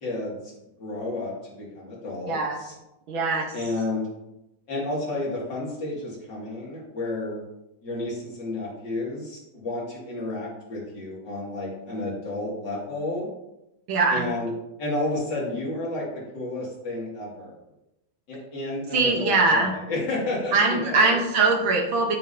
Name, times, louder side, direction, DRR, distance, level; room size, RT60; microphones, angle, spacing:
voice 1, 0.0-2.7 3.5-4.1 4.7-7.4 7.8-13.3 14.1-14.5 14.8-17.5 18.3-21.2, left 2 dB, 40° left, -5 dB, 2.8 m, -31 dB
voice 2, 2.3-2.6 3.1-3.5 13.9-14.3 18.9-19.7 20.5-22.2, right 3 dB, 60° right, 2 dB, 1.5 m, -22 dB
8.9 x 7.7 x 2.8 m, 0.89 s
omnidirectional pair, 3.3 m